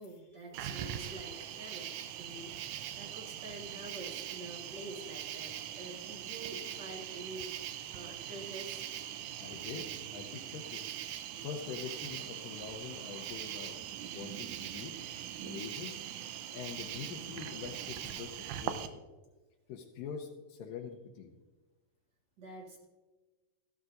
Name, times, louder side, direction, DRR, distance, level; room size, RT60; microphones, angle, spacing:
voice 1, 0.0-7.5 7.9-9.3 22.4-22.8, right 2 dB, 40° right, -1 dB, 1.8 m, -47 dB
Cricket, 0.5-18.9, right 11 dB, 80° right, 1.9 m, -42 dB
voice 2, 9.4-10.8 11.2-13.8 14.1-15.0 15.4-16.0 16.5-19.0 19.7-21.3, left 7 dB, 85° left, 1 dB, 2.5 m, -44 dB
14.5 x 12.5 x 2.6 m, 1.2 s
omnidirectional pair, 3.8 m